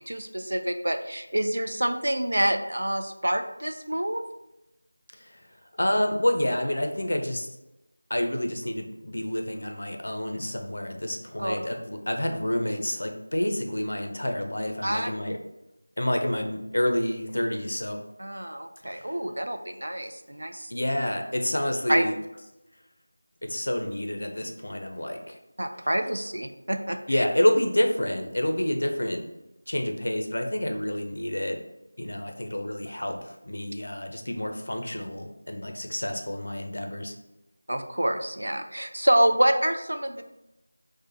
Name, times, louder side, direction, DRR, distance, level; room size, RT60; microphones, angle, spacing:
voice 1, 0.0-4.2 11.4-11.6 14.8-15.1 18.2-20.7 21.9-22.0 25.6-27.2 37.7-40.2, right 1 dB, 85° right, 6 dB, 0.4 m, -27 dB
voice 2, 5.8-7.6 8.1-15.4 16.0-18.0 18.8-19.1 20.7-22.1 23.4-25.4 27.1-29.2 29.7-31.6 32.0-37.1, left 1 dB, 70° left, 4 dB, 0.5 m, -28 dB
4.6 x 2.1 x 2.6 m, 0.95 s
figure-of-eight pair, 175°, 0 cm